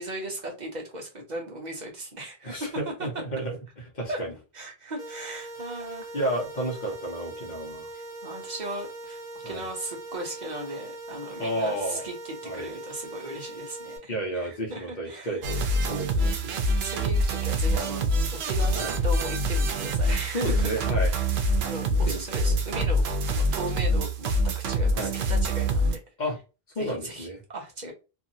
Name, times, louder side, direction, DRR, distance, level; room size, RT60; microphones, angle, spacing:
voice 1, 0.0-2.7 3.0-3.1 4.1-4.2 4.5-6.1 8.2-9.2 9.4-15.3 16.8-20.7 21.6-26.0 26.8-27.9, right 1 dB, 45° right, 0.9 m, -37 dB
voice 2, 2.4-4.3 6.1-7.9 9.4-9.6 11.4-12.1 12.4-12.7 14.1-16.6 18.8-18.9 20.3-21.1 22.1-22.6 25.0-25.1 26.2-26.4 26.7-27.4, right 1 dB, 50° left, 0.9 m, -32 dB
sound 1, 5.0-14.0, right 2 dB, 5° right, 1.1 m, -41 dB
sound 2, 15.4-26.0, equal, 85° right, 0.8 m, -25 dB
2.8 x 2.5 x 2.6 m
omnidirectional pair, 1.0 m